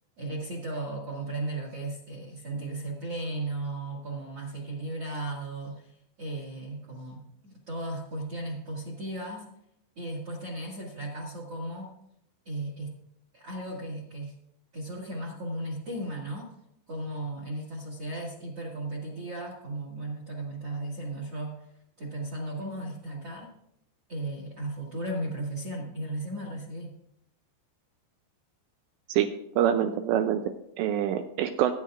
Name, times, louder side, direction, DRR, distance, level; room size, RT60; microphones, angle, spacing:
voice 1, 0.2-9.5 10.0-11.9 12.5-12.9 13.3-14.3 14.7-16.5 16.9-21.7 22.0-23.5 24.1-26.9, right 1 dB, 50° right, -2 dB, 1.8 m, -36 dB
voice 2, 29.6-31.7, right 10 dB, 85° right, 7 dB, 2.5 m, -26 dB
20.5 x 10.0 x 2.5 m, 0.77 s
omnidirectional pair, 5.6 m